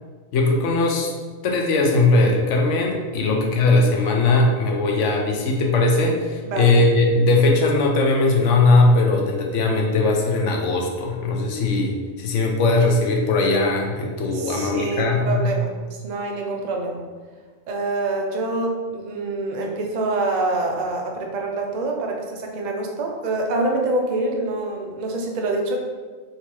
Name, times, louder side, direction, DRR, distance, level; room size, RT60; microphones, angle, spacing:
voice 1, 0.3-1.1 1.4-15.5, left 2 dB, 75° left, 1 dB, 0.9 m, -19 dB
voice 2, 6.4-6.8 14.3-17.0 17.7-25.8, right 2 dB, 60° right, 1 dB, 0.4 m, -26 dB
3.5 x 2.8 x 3.0 m, 1.4 s
omnidirectional pair, 1.3 m